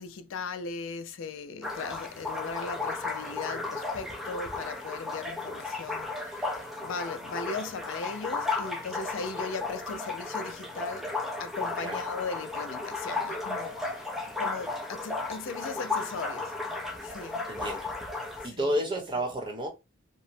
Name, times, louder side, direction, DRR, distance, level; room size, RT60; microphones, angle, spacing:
voice 1, 0.0-11.1 11.4-17.7 18.4-18.7, left 4 dB, 80° left, 0.4 m, -38 dB
sound 1, 1.6-18.5, left 3 dB, ahead, 0.5 m, -34 dB
voice 2, 17.5-17.9 18.4-19.7, equal, 25° right, 0.8 m, -30 dB
3.0 x 2.0 x 2.6 m
head